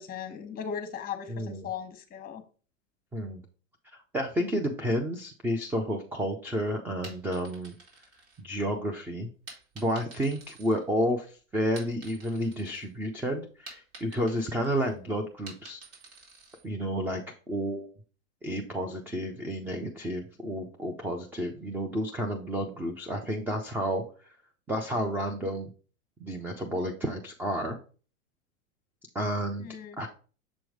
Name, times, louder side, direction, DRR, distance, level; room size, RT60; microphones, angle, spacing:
voice 1, 0.0-2.4 29.6-30.0, left 7 dB, 20° left, 7 dB, 1.2 m, -38 dB
voice 2, 1.3-1.7 3.1-3.4 3.9-7.7 8.4-9.3 9.8-15.8 16.6-17.2 17.5-17.9 18.4-24.0 24.7-25.7 26.2-27.8 29.1-29.7 30.0-30.1, equal, 5° right, 4 dB, 0.3 m, -31 dB
sound 1, 6.9-8.8 9.5-11.2 11.6-12.9 13.2-16.6, right 3 dB, 60° right, 3.0 m, -50 dB
7.1 x 3.0 x 4.9 m, 0.38 s
hypercardioid pair, 115°, 40 cm